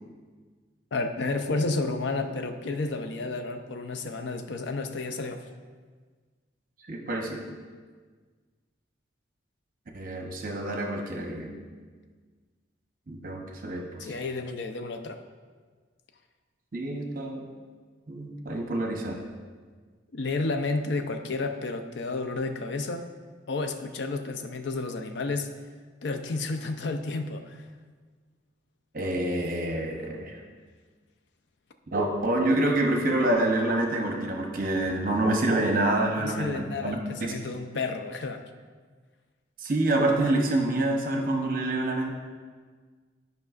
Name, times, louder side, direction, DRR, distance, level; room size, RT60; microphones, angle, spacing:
voice 1, 0.9-5.4 14.0-15.2 20.1-23.1 23.5-25.5 26.0-27.7 36.2-38.4, left 3 dB, 70° left, 7 dB, 0.5 m, -31 dB
voice 2, 6.9-7.4 9.9-11.5 13.1-14.1 16.7-17.5 18.1-19.2 28.9-30.3 31.9-37.4 39.6-42.1, right 1 dB, 45° right, 1 dB, 0.8 m, -27 dB
10.5 x 5.3 x 2.5 m, 1.5 s
head